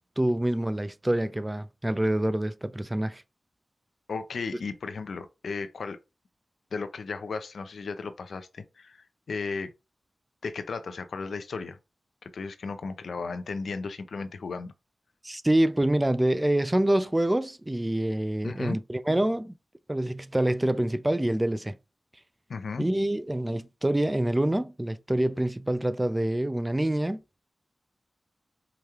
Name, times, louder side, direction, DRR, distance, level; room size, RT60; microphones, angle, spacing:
voice 1, 0.2-3.2 15.2-19.5 19.9-21.8 22.8-27.2, right 1 dB, 15° right, 0.3 m, -26 dB
voice 2, 4.1-6.0 6.7-9.7 10.4-11.8 12.2-14.7 18.4-18.8 22.5-22.9, left 4 dB, 80° left, 0.4 m, -35 dB
4.8 x 2.3 x 2.8 m
cardioid pair, 60°, 0 cm